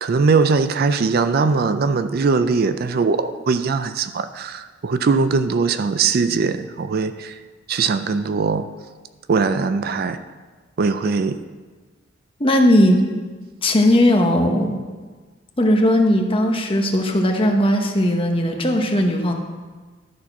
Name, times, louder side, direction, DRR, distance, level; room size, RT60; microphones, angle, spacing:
voice 1, 0.0-7.4 7.7-8.7 9.3-10.2 10.8-11.4, right 4 dB, 50° right, 11 dB, 0.4 m, -20 dB
voice 2, 12.4-13.0 13.6-14.8 15.6-19.3, left 1 dB, 30° left, 3 dB, 1.0 m, -17 dB
12.0 x 4.3 x 5.9 m, 1.3 s
head